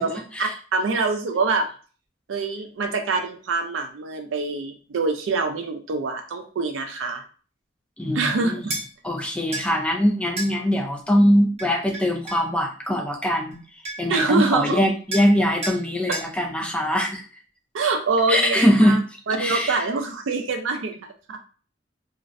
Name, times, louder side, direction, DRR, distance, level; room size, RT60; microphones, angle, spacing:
voice 1, 0.0-1.7 2.3-7.2 8.1-8.8 14.1-14.8 17.7-19.0 19.3-21.4, right 4 dB, 90° right, 5 dB, 0.4 m, -25 dB
voice 2, 8.0-8.7 9.0-13.6 14.0-17.2 18.3-19.0 19.4-19.8, equal, 5° left, 0 dB, 0.4 m, -22 dB
sound 1, 8.7-8.9 9.5-9.7 10.4-10.5 11.6-12.5 13.5-13.6 13.8-14.2 15.1-15.3 15.6-15.8 16.1-16.3, right 2 dB, 35° right, 0.7 m, -31 dB
2.4 x 2.0 x 2.5 m, 0.39 s
head